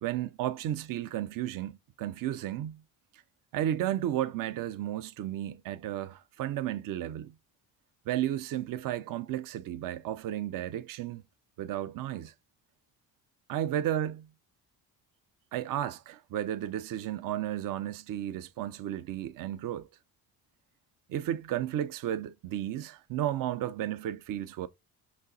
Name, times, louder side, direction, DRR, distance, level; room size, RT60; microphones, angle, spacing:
voice 1, 0.0-2.8 3.5-7.3 8.1-11.2 11.6-12.3 13.5-14.3 15.5-19.9 21.1-24.7, right 12 dB, 50° right, 0.5 m, -33 dB
5.3 x 2.0 x 2.5 m
supercardioid pair, 65°, 44 cm